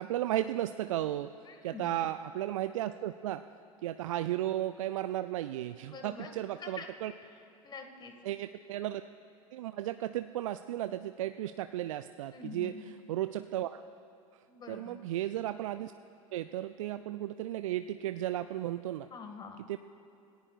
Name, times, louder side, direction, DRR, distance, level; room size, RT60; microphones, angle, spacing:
voice 1, 0.0-1.3 1.6-3.4 3.8-7.1 8.2-9.0 9.5-13.8 14.7-15.9 16.3-19.1 19.7-19.8, right 13 dB, 60° right, 11 dB, 0.4 m, -34 dB
voice 2, 1.5-2.0 5.8-6.9 7.6-8.1 12.3-12.8 14.5-15.0 19.1-19.6, left 5 dB, 25° left, 5 dB, 1.9 m, -46 dB
26.0 x 18.5 x 2.4 m, 2.6 s
figure-of-eight pair, 85°, 19 cm